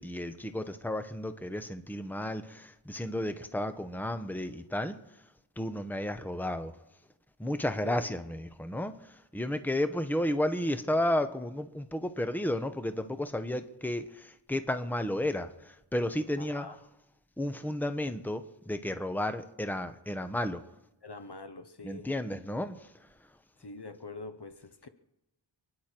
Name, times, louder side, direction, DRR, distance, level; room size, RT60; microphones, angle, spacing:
voice 1, 0.0-5.0 5.6-6.8 7.4-16.7 17.4-20.6 21.8-23.1, left 1 dB, 5° left, 1.0 m, -33 dB
voice 2, 16.4-16.8 21.0-22.1 23.6-24.9, left 3 dB, 55° left, 1.1 m, -44 dB
28.5 x 10.5 x 4.6 m
wide cardioid pair, 45°, 48 cm